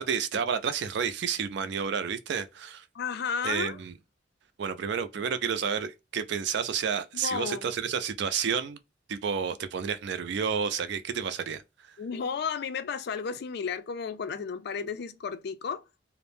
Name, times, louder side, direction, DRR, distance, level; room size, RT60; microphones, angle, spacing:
voice 1, 0.0-2.8 3.4-3.9 4.6-8.8 9.1-11.6, right 7 dB, 65° right, 0.4 m, -30 dB
voice 2, 2.9-3.8 7.2-7.7 12.0-15.8, left 6 dB, 60° left, 0.4 m, -33 dB
2.5 x 2.0 x 3.3 m
head